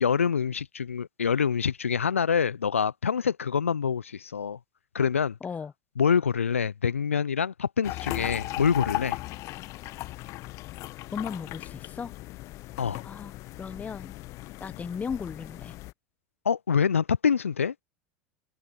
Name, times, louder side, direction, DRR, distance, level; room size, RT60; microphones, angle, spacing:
voice 1, 0.0-4.6 4.9-5.4 6.0-9.2 12.8-13.0 16.4-17.7, left 6 dB, 85° left, 0.5 m, -26 dB
voice 2, 5.4-5.7 11.1-12.1 13.0-13.3 13.6-14.1 14.6-15.8, left 6 dB, 20° left, 1.3 m, -36 dB
sound 1, 7.8-15.9, left 18 dB, 45° left, 1.1 m, -37 dB
figure-of-eight pair, 80°, 7 cm